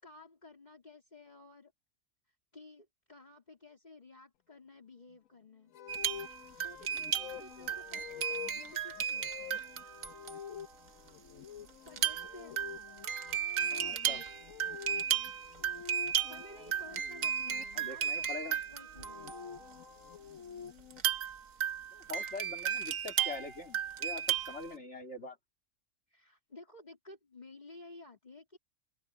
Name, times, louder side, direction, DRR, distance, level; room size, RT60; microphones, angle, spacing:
voice 1, 0.0-1.7 2.5-5.7 6.2-9.5 11.8-12.7 16.3-19.8 26.1-28.6, left 2 dB, 35° left, 3.6 m, -54 dB
sound 1, 5.7-17.7 18.8-21.0, left 9 dB, 90° left, 1.2 m, -48 dB
sound 2, 5.9-10.6 11.9-19.8 20.9-24.7, right 9 dB, 90° right, 1.5 m, -35 dB
voice 2, 13.7-14.2 17.7-18.6 21.9-25.4, left 3 dB, 60° left, 3.2 m, -44 dB
omnidirectional pair, 1.3 m